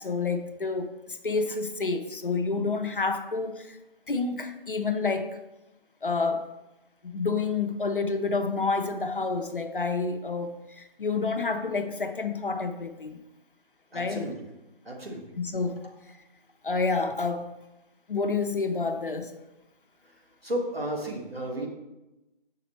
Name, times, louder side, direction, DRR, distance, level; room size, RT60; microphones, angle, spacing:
voice 1, 0.0-3.8 4.1-5.3 6.0-6.5 7.0-13.2 13.9-14.3 15.4-15.9 16.6-17.5 18.1-19.3, left 4 dB, 65° left, 7 dB, 0.7 m, -29 dB
voice 2, 13.9-14.3 14.8-15.3 20.4-21.7, right 1 dB, 90° right, 0 dB, 1.8 m, -33 dB
6.8 x 5.7 x 3.1 m, 0.99 s
figure-of-eight pair, 160°, 29 cm